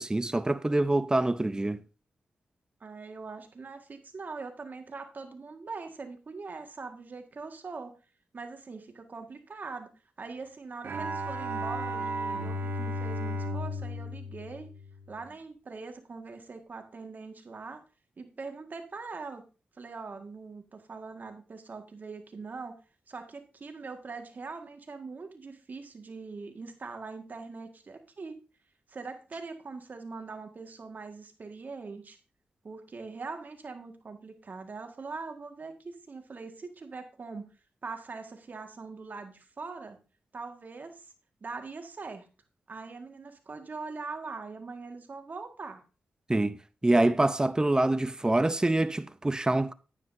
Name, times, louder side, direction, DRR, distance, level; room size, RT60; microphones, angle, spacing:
voice 1, 0.0-1.8 46.3-49.7, right 2 dB, 20° right, 0.6 m, -26 dB
voice 2, 2.8-7.9 8.3-9.9 10.2-14.7 15.1-17.8 18.2-19.4 19.8-22.8 23.1-28.4 28.9-32.2 32.6-37.5 37.8-40.0 40.3-41.1 41.4-42.3 42.7-45.8, right 4 dB, 50° right, 1.8 m, -42 dB
Bowed string instrument, 10.8-15.3, equal, 75° right, 1.2 m, -34 dB
9.8 x 9.7 x 2.7 m
cardioid pair, 55°, 4 cm